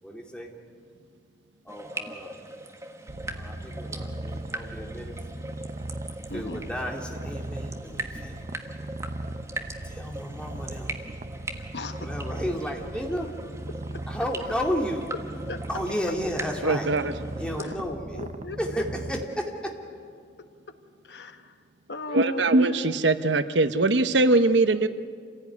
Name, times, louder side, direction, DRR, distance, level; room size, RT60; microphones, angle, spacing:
voice 1, 0.0-0.5 1.6-2.4 3.3-5.2 6.2-8.4 9.8-11.0 12.0-13.3 14.1-15.1 15.7-16.9 17.4-18.2 18.6-19.7, equal, 5° left, 0 dB, 2.6 m, -32 dB
sound 1, 1.7-17.7, right 2 dB, 15° right, 1.5 m, -41 dB
Purr, 3.1-19.2, right 1 dB, 40° right, 0.7 m, -38 dB
voice 2, 6.3-6.6 11.7-12.1 15.5-15.6 17.6-19.1 20.4-20.8 21.0-21.6 21.9-23.0, left 2 dB, 65° left, 8 dB, 1.3 m, -38 dB
voice 3, 16.6-17.1 22.1-24.9, right 2 dB, 80° right, 11 dB, 0.9 m, -21 dB
28.0 x 16.0 x 9.5 m, 2.2 s
head